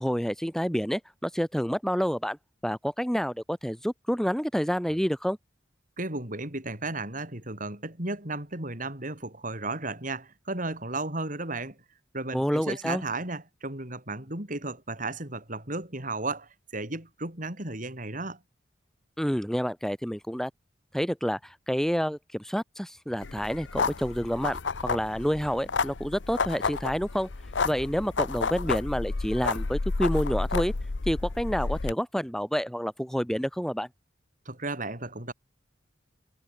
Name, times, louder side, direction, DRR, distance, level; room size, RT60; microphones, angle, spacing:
voice 1, 0.0-2.4 2.6-5.4 12.3-13.0 19.2-20.5 20.9-27.3 27.6-30.7 31.1-33.9, equal, 5° left, 3.7 m, -28 dB
voice 2, 6.0-11.8 12.1-18.4 34.4-35.3, right 2 dB, 45° right, 6.6 m, -34 dB
sound 1, 23.2-31.9, left 4 dB, 85° left, 0.9 m, -31 dB
head